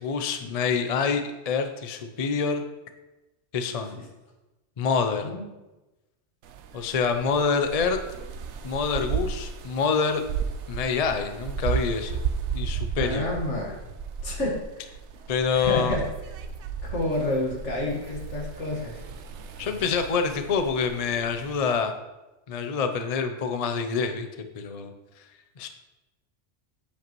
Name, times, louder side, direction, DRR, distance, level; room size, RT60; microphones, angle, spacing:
voice 1, 0.0-2.6 3.5-4.0 4.8-5.2 6.7-8.0 8.6-10.2 10.7-12.1 12.5-13.3 15.3-16.0 19.6-21.9 22.5-24.3 24.6-24.9 25.6-25.7, left 5 dB, 45° left, 7 dB, 0.6 m, -26 dB
sound 1, 6.4-21.8, right 6 dB, 75° right, 0.9 m, -34 dB
voice 2, 13.0-13.8 14.2-14.9 15.5-16.1 16.8-19.0, left 1 dB, 75° left, -1 dB, 2.0 m, -29 dB
8.4 x 7.7 x 3.0 m, 1.0 s
omnidirectional pair, 1.2 m